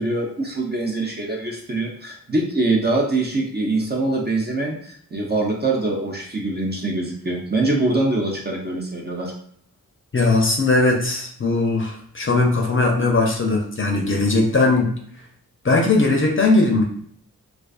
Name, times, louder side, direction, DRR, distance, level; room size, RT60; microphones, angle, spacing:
voice 1, 0.0-9.3, right 2 dB, 30° right, -1 dB, 0.6 m, -23 dB
voice 2, 10.1-14.9 15.6-16.8, left 3 dB, 35° left, 0 dB, 0.6 m, -19 dB
2.3 x 2.3 x 2.4 m, 0.62 s
cardioid pair, 45°, 36 cm